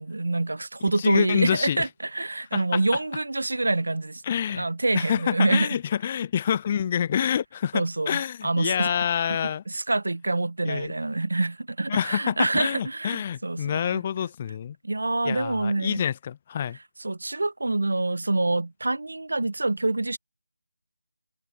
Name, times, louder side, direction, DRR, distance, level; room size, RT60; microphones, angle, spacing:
voice 1, 0.0-4.2 4.5-5.7 7.7-8.9 9.3-13.8 14.8-16.0 17.0-20.2, right 2 dB, 70° right, 1.3 m, -26 dB
voice 2, 1.0-1.9 2.5-2.6 4.2-4.7 4.9-9.6 10.6-10.9 11.9-14.8 15.2-16.8, left 9 dB, 25° left, 0.4 m, -27 dB
figure-of-eight pair, 165°, 0 cm